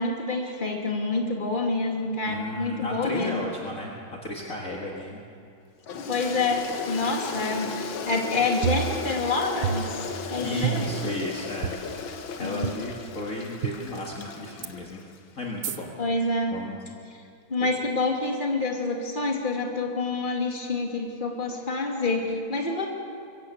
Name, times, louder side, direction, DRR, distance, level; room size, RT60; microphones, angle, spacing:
voice 1, 0.0-3.4 6.1-10.9 12.4-12.7 16.0-16.6 17.5-22.9, left 3 dB, 25° left, 1 dB, 2.6 m, -27 dB
voice 2, 2.2-5.2 10.4-15.0 15.3-15.9 16.5-16.8 17.6-17.7, left 1 dB, 45° left, -2 dB, 2.3 m, -34 dB
Toilet flush, 5.9-15.2, left 5 dB, 80° left, 2.0 m, -36 dB
sound 1, 8.6-9.3 9.6-10.2 10.6-11.1 11.6-11.7 12.6-12.7 13.6-13.7 14.6-14.7 15.6-15.8, right 11 dB, 65° right, 1.4 m, -29 dB
23.0 x 16.5 x 8.1 m, 2.5 s
omnidirectional pair, 2.1 m